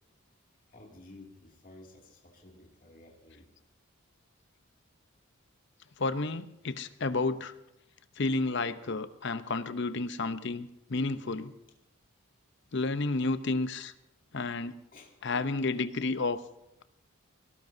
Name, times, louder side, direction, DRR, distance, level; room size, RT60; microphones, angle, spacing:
voice 1, 0.7-3.5 14.9-15.2, left 2 dB, 40° left, 0 dB, 2.5 m, -53 dB
voice 2, 6.0-7.5 8.2-11.5 12.7-13.9 14.3-14.8 15.2-16.4, left 3 dB, 55° left, 12 dB, 0.7 m, -31 dB
22.5 x 17.5 x 2.7 m, 0.85 s
head